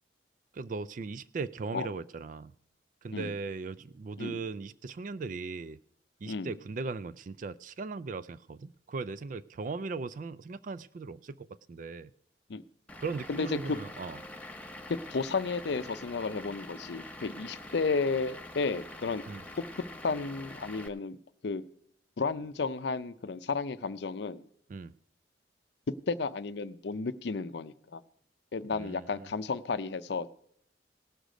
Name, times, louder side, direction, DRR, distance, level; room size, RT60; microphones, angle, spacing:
voice 1, 0.5-2.5 3.0-5.8 6.2-12.1 13.0-14.2 19.3-19.4 24.7-25.0 28.7-29.3, right 4 dB, 45° right, 16 dB, 0.4 m, -38 dB
Vehicle / Engine, 12.9-20.9, left 1 dB, 10° left, 0.7 m, -45 dB
voice 2, 13.3-13.8 14.9-19.2 20.0-21.2 21.4-21.6 22.2-24.4 26.1-28.0 28.5-30.3, left 4 dB, 65° left, 14 dB, 0.5 m, -33 dB
18.0 x 6.5 x 5.1 m, 0.66 s
head